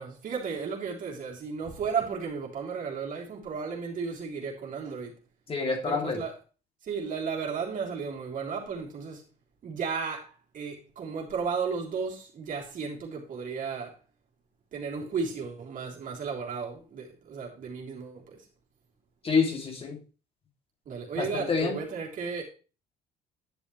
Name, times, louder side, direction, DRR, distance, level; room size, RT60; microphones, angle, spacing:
voice 1, 0.0-5.1 5.8-6.3 6.8-9.2 9.6-13.9 14.7-18.4 20.9-22.4, right 5 dB, 50° right, 3.5 m, -34 dB
voice 2, 5.5-6.2 19.2-20.0 21.2-21.8, left 4 dB, 35° left, 2.7 m, -27 dB
10.5 x 7.4 x 3.2 m
cardioid pair, 110°, 17 cm